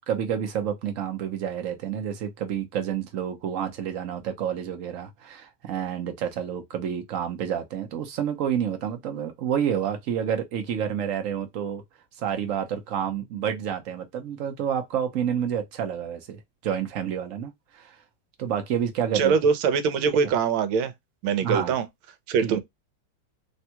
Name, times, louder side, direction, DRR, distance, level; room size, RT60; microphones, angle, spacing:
voice 1, 0.1-11.8 12.2-18.0 18.4-19.3 21.4-21.7 22.4-22.6, right 9 dB, 65° right, 0.8 m, -29 dB
voice 2, 19.1-20.9 21.2-21.9 22.3-22.6, right 6 dB, 90° right, 1.5 m, -23 dB
3.5 x 2.2 x 2.7 m
omnidirectional pair, 2.2 m